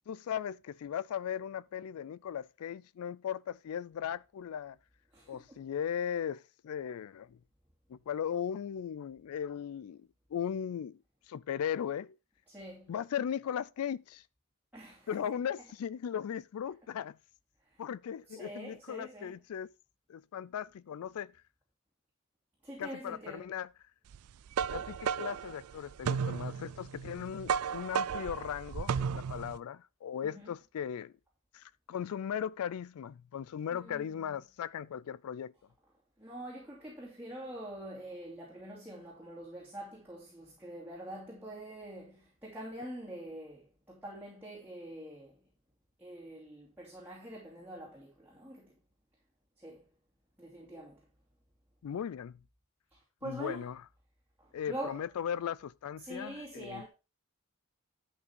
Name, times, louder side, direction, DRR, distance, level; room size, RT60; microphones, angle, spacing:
voice 1, 0.1-4.8 5.3-7.4 7.9-11.0 11.3-12.2 12.9-14.2 15.1-17.2 17.8-19.7 20.1-21.3 22.8-23.7 24.7-31.1 31.5-35.5 51.8-52.4 53.2-53.8 54.5-56.9, left 8 dB, 85° left, 0.3 m, -37 dB
voice 2, 5.1-5.6 12.5-12.9 14.7-15.2 18.3-19.3 22.6-23.5 30.2-30.5 33.7-34.1 36.2-45.4 46.0-48.7 49.6-49.8 50.4-51.0 53.2-53.6 54.4-55.0 56.0-56.9, right 1 dB, 10° right, 2.7 m, -45 dB
sound 1, 24.1-29.6, right 7 dB, 90° right, 0.4 m, -34 dB
11.0 x 5.4 x 4.4 m
head